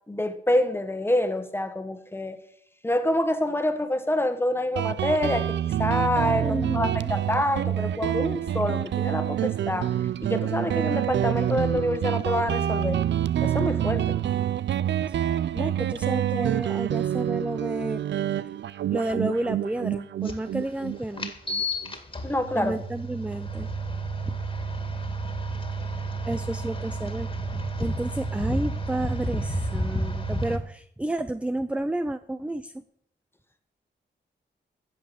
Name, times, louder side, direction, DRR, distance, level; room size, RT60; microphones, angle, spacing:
voice 1, 0.1-2.4 2.8-5.5 5.8-9.9 10.2-13.0 13.4-14.2 22.2-22.8, left 1 dB, 10° left, 1.4 m, -26 dB
Guitar, 4.8-22.0, right 11 dB, 75° right, 0.5 m, -27 dB
voice 2, 6.4-7.1 15.1-15.2 15.5-18.0 18.4-18.5 18.9-21.3 22.5-23.7 24.3-24.4 26.3-27.3 27.8-32.8, right 1 dB, 5° right, 0.5 m, -31 dB
sound 1, 20.3-20.4 21.2-30.6, right 1 dB, 25° left, 2.0 m, -31 dB
14.5 x 7.8 x 6.9 m
wide cardioid pair, 110°, 19 cm